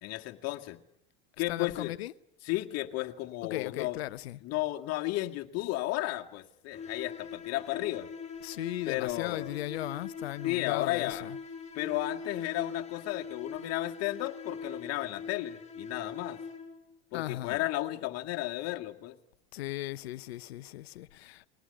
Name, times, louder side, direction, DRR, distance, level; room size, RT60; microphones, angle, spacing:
voice 1, 0.0-0.8 1.4-1.9 2.4-4.0 4.4-8.1 8.8-9.5 10.4-11.3 11.7-16.4 17.1-19.2, left 17 dB, 55° left, 2.0 m, -33 dB
voice 2, 1.5-2.1 3.4-4.4 8.4-11.4 17.1-17.6 19.5-21.5, left 15 dB, 80° left, 0.9 m, -37 dB
sound 1, 6.7-16.9, left 5 dB, 20° left, 5.3 m, -42 dB
21.5 x 18.5 x 10.0 m
hypercardioid pair, 95°, 31 cm